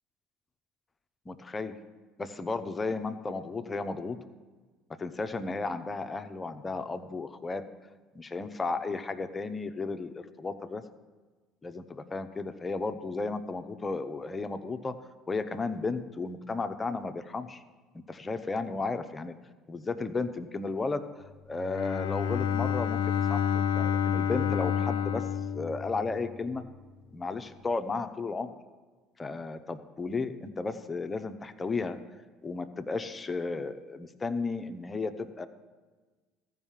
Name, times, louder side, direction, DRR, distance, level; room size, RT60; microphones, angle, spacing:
voice 1, 1.3-1.7 2.2-4.2 5.0-7.6 8.1-10.8 11.6-14.9 15.3-17.6 18.1-19.3 19.7-21.0 21.5-25.2 25.5-26.6 27.1-28.5 29.2-32.0 32.4-35.5, left 3 dB, 25° left, 9 dB, 0.8 m, -34 dB
Bowed string instrument, 21.5-26.5, left 8 dB, 85° left, 0.5 m, -29 dB
14.0 x 5.5 x 7.4 m, 1.3 s
hypercardioid pair, 70°, 0 cm